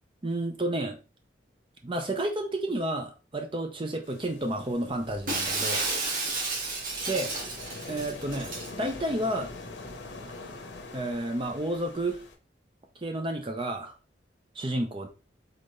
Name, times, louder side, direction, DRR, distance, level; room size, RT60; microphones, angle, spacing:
voice 1, 0.2-1.0 1.8-5.9 7.1-7.3 7.9-8.5 8.8-9.5 10.9-12.2 13.0-13.9 14.6-15.1, right 1 dB, 30° right, 5 dB, 0.6 m, -31 dB
sound 1, 4.0-12.4, left 2 dB, 85° left, 0.9 m, -44 dB
Shatter, 5.3-8.7, right 3 dB, 50° right, 1.5 m, -31 dB
4.0 x 4.0 x 3.2 m, 0.32 s
head